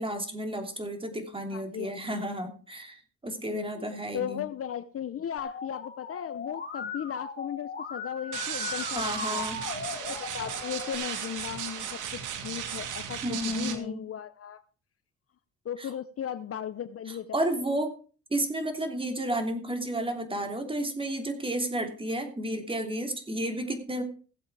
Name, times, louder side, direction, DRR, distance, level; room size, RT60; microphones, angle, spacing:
voice 1, 0.0-4.5 8.9-9.6 13.2-14.0 15.8-15.9 17.3-17.9 18.3-24.0, right 1 dB, 15° right, 3.0 m, -32 dB
voice 2, 1.5-2.1 3.5-9.4 9.9-14.6 15.6-17.6, left 9 dB, 50° left, 0.8 m, -37 dB
Musical instrument, 5.4-10.9, left 5 dB, 35° left, 3.4 m, -38 dB
sound 1, 8.3-13.7, right 8 dB, 90° right, 2.1 m, -35 dB
16.5 x 7.9 x 4.9 m
cardioid pair, 90°, 30 cm